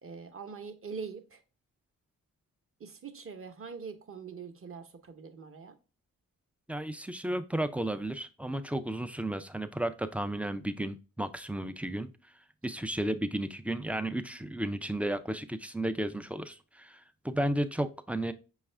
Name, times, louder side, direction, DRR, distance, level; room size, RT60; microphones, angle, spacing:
voice 1, 0.0-1.4 2.8-5.8, right 5 dB, 35° right, 0.8 m, -43 dB
voice 2, 6.7-12.1 12.6-18.3, right 1 dB, 5° right, 0.3 m, -33 dB
5.3 x 2.4 x 3.2 m
supercardioid pair, 40°, 38 cm